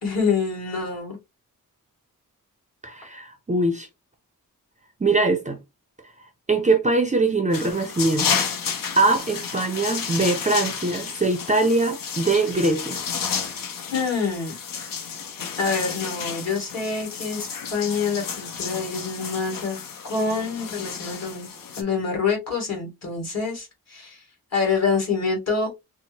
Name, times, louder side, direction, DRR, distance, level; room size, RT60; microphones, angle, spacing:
voice 1, 0.0-1.2 13.9-14.5 15.6-19.8 20.1-21.5 21.7-24.2 24.5-25.7, left 5 dB, 50° left, 2.0 m, -26 dB
voice 2, 2.8-3.9 5.0-5.6 6.5-8.4 8.9-13.0, right 2 dB, 20° right, 0.4 m, -22 dB
sound 1, 7.5-21.8, left 6 dB, 80° left, 0.7 m, -31 dB
4.2 x 2.0 x 2.8 m
wide cardioid pair, 165°, 33 cm